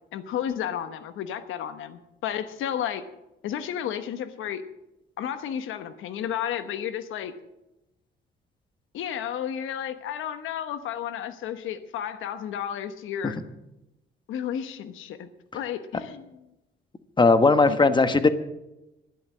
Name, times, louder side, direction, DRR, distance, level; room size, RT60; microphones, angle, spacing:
voice 1, 0.1-3.0 3.4-4.6 5.2-7.3 8.9-13.4 14.3-15.3 15.5-16.4 17.7-17.8, left 9 dB, 85° left, 10 dB, 1.1 m, -32 dB
voice 2, 17.2-18.3, left 3 dB, 25° left, 10 dB, 1.2 m, -18 dB
12.5 x 10.5 x 7.4 m, 0.94 s
cardioid pair, 90°, 20 cm